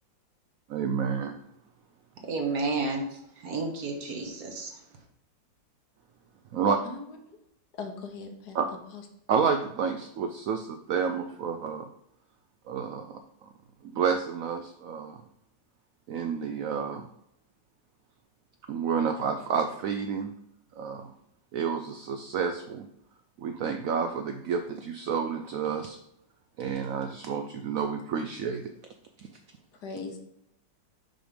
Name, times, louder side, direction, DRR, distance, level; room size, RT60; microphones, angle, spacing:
voice 1, 0.7-1.4 6.5-6.8 8.5-8.7 9.3-11.9 12.7-13.2 13.8-15.2 16.1-17.1 18.7-20.3 20.8-21.1 21.5-22.9 23.4-26.0 26.6-28.7, right 6 dB, 80° right, 6 dB, 0.7 m, -30 dB
voice 2, 2.2-3.1 3.4-4.8, right 3 dB, 55° right, 3 dB, 1.5 m, -31 dB
voice 3, 6.8-7.4 7.8-8.6 8.9-9.0 29.8-30.2, left 4 dB, 65° left, 4 dB, 1.5 m, -39 dB
5.9 x 5.1 x 5.0 m, 0.76 s
omnidirectional pair, 2.0 m